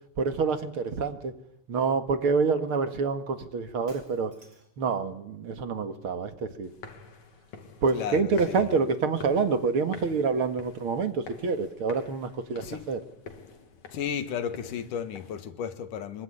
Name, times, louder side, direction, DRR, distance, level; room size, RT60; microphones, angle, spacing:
voice 1, 0.2-1.4 1.7-4.3 4.8-6.7 7.8-13.0, right 4 dB, 50° right, 2.4 m, -27 dB
Shatter, 3.9-4.9, right 1 dB, 25° right, 6.2 m, -55 dB
sound 1, 6.6-15.4, left 5 dB, 65° left, 4.1 m, -48 dB
voice 2, 7.9-8.7 12.6-12.9 13.9-16.2, left 8 dB, 85° left, 3.2 m, -34 dB
25.0 x 24.0 x 9.9 m
omnidirectional pair, 3.5 m